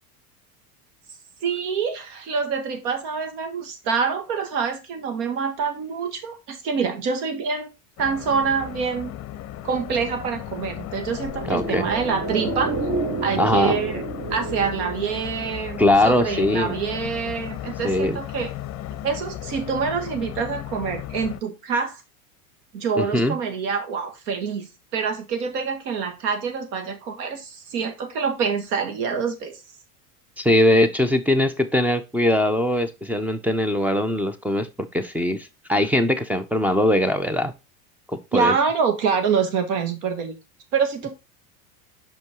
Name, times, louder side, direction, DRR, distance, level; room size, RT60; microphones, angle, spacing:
voice 1, 1.4-7.7 8.0-9.1 9.6-12.8 13.2-14.0 14.3-15.8 16.0-18.5 19.0-22.0 22.7-29.6 38.3-40.3 40.7-41.1, right 5 dB, 75° right, 7 dB, 1.8 m, -26 dB
sound 1, 8.0-21.4, left 12 dB, 35° left, 0.6 m, -35 dB
sound 2, 11.3-16.1, right 3 dB, 40° right, 1.6 m, -29 dB
voice 2, 11.5-11.9 13.4-13.8 15.8-16.7 17.8-18.2 23.0-23.4 30.4-37.5 38.3-38.5, left 1 dB, 5° right, 11 dB, 0.3 m, -21 dB
5.5 x 5.3 x 3.6 m, 0.25 s
supercardioid pair, 105°, 46 cm